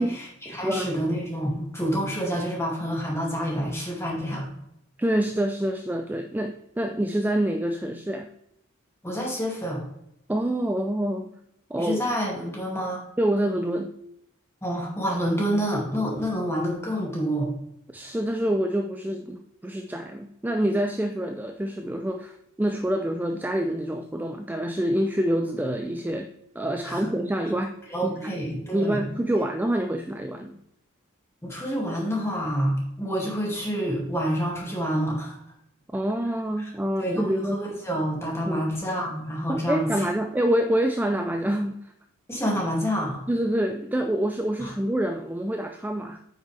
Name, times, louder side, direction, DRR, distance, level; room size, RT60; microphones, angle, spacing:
voice 1, 0.0-4.5 9.0-9.8 11.8-13.0 14.6-17.5 26.8-27.1 27.9-29.1 31.4-35.4 36.6-36.7 37.0-40.1 42.3-43.2 44.6-44.7, equal, 15° left, -2 dB, 2.2 m, -28 dB
voice 2, 5.0-8.3 10.3-11.3 11.7-12.1 13.2-13.9 17.9-26.3 26.6-27.7 28.0-28.3 28.7-30.6 35.9-37.6 38.4-38.7 39.5-41.9 43.3-46.3, right 1 dB, 10° right, 5 dB, 0.4 m, -26 dB
8.8 x 5.9 x 3.3 m, 0.77 s
head